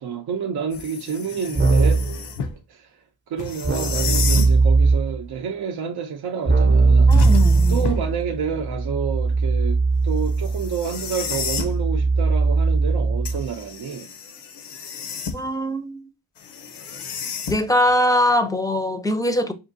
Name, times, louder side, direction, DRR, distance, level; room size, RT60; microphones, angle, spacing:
voice 1, 0.0-2.0 2.7-7.2 7.7-14.1, right 6 dB, 75° right, 0.6 m, -29 dB
sound 1, 0.7-2.6 3.4-4.6 7.1-8.2 10.4-11.8 13.3-15.6 16.4-17.9, left 6 dB, 90° left, 0.6 m, -31 dB
Keyboard (musical), 1.6-2.2 3.6-5.2 6.5-13.5, right 3 dB, 30° right, 0.6 m, -19 dB
voice 2, 7.1-7.9 15.3-16.0 17.5-19.5, left 1 dB, 10° left, 0.4 m, -22 dB
5.1 x 2.5 x 2.6 m
cardioid pair, 85°, 40 cm